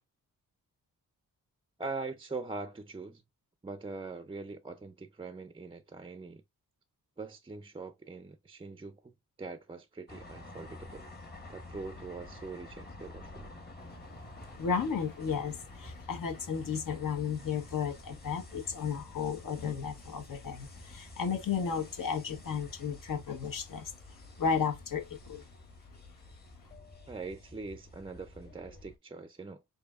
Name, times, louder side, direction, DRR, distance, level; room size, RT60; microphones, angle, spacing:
voice 1, 1.8-3.2 3.6-6.4 7.2-9.1 9.4-11.0 11.5-13.5 27.1-29.6, right 3 dB, 15° right, 0.4 m, -42 dB
sound 1, 10.1-29.0, left 2 dB, 30° left, 1.2 m, -49 dB
voice 2, 14.4-25.5, left 6 dB, 75° left, 1.1 m, -34 dB
6.6 x 2.6 x 2.4 m
wide cardioid pair, 165°, 34 cm